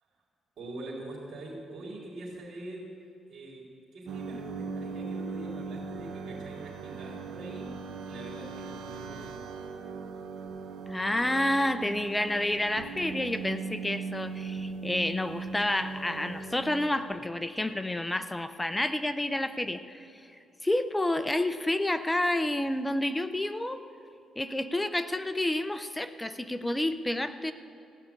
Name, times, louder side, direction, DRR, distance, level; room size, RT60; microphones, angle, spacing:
voice 1, 0.6-2.9 3.3-7.7 8.0-9.4, right 2 dB, 60° right, -2 dB, 4.2 m, -44 dB
sound 1, 4.1-17.2, right 4 dB, 75° right, 0.9 m, -39 dB
voice 2, 10.9-20.0 20.6-23.8 24.4-27.5, left 1 dB, 10° left, 11 dB, 0.6 m, -29 dB
16.0 x 5.8 x 9.7 m, 2.6 s
cardioid pair, 90°, 0 cm